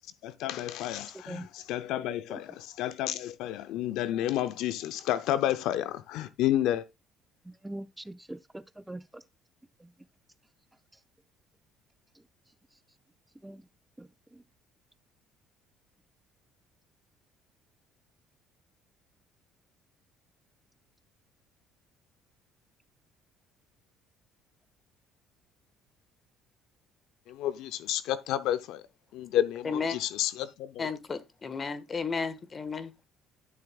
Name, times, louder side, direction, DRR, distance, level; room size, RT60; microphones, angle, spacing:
voice 1, 0.2-6.8 27.3-28.8 29.1-30.9, left 12 dB, 75° left, 0.6 m, -30 dB
voice 2, 7.5-9.2 9.8-9.9 13.4-13.6 14.0-14.1 14.3-14.4, right 1 dB, 10° right, 0.5 m, -42 dB
voice 3, 29.6-30.0 30.8-32.9, left 5 dB, 35° left, 1.5 m, -33 dB
12.0 x 7.1 x 2.4 m
supercardioid pair, 80°, 0 cm